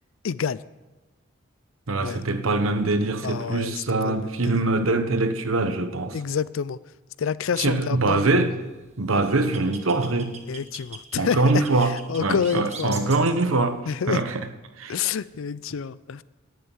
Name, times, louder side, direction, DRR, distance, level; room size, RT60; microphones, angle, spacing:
voice 1, 0.2-0.6 2.0-2.2 3.2-4.6 6.1-6.8 7.2-8.3 10.5-13.1 13.9-14.2 14.9-16.2, left 7 dB, 65° left, 0.4 m, -28 dB
voice 2, 1.9-6.2 7.6-8.5 9.0-10.4 11.2-11.9 12.2-13.8 14.1-14.4 14.8-15.0, right 2 dB, 75° right, 1.1 m, -23 dB
sound 1, 8.6-13.6, right 5 dB, 35° right, 1.4 m, -42 dB
10.5 x 8.6 x 8.7 m
head